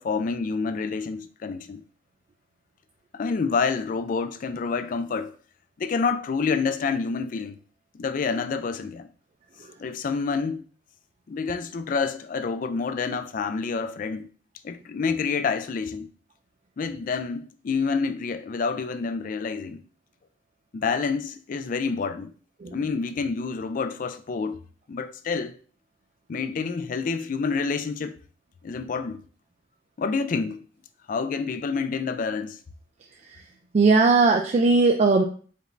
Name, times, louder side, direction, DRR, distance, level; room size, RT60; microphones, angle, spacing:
voice 1, 0.0-1.8 3.1-5.3 5.8-7.6 7.9-9.1 9.8-10.6 11.3-14.3 14.6-16.1 16.8-19.8 20.7-22.3 22.7-24.6 24.9-25.5 26.3-28.2 28.6-29.2 30.0-30.6 31.1-32.6, left 5 dB, 45° left, 0.3 m, -28 dB
voice 2, 33.7-35.2, right 3 dB, 35° right, 0.3 m, -18 dB
5.1 x 2.5 x 3.2 m
head